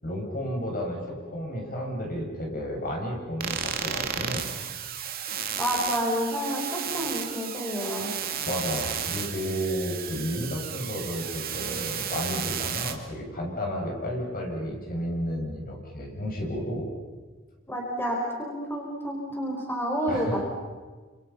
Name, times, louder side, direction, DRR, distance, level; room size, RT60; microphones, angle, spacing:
voice 1, 0.0-4.5 8.4-16.9 20.1-20.4, equal, 45° left, 0 dB, 7.0 m, -32 dB
sound 1, 3.4-12.9, right 8 dB, 45° right, 2.4 m, -33 dB
voice 2, 5.6-8.1 17.7-20.4, equal, 10° left, -1 dB, 5.2 m, -29 dB
29.5 x 27.5 x 5.8 m, 1.4 s
head